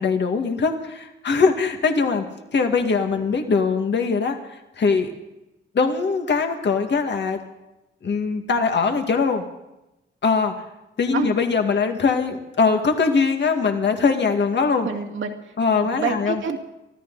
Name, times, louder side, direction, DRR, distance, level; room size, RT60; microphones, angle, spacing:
voice 1, 0.0-2.3 2.5-5.1 5.7-7.4 8.0-9.4 10.2-10.6 11.0-14.9 15.6-16.4, left 5 dB, 60° left, 4 dB, 2.0 m, -21 dB
voice 2, 14.8-15.3 15.8-16.6, right 6 dB, 75° right, 3 dB, 2.3 m, -27 dB
24.5 x 14.5 x 4.0 m, 0.92 s
cardioid pair, 85°, 20 cm